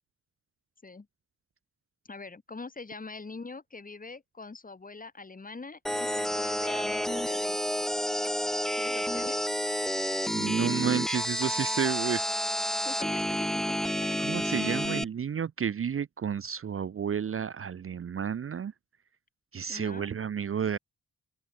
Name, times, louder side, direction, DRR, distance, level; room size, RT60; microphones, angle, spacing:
voice 1, 2.1-7.6 8.7-9.4 12.8-14.2 19.7-20.1, left 3 dB, 25° left, 3.7 m, -43 dB
sound 1, 5.9-15.0, equal, ahead, 0.8 m, -30 dB
voice 2, 10.3-12.2 14.2-18.7 19.5-20.8, right 7 dB, 45° right, 0.7 m, -31 dB
open air
wide cardioid pair, 155°, 31 cm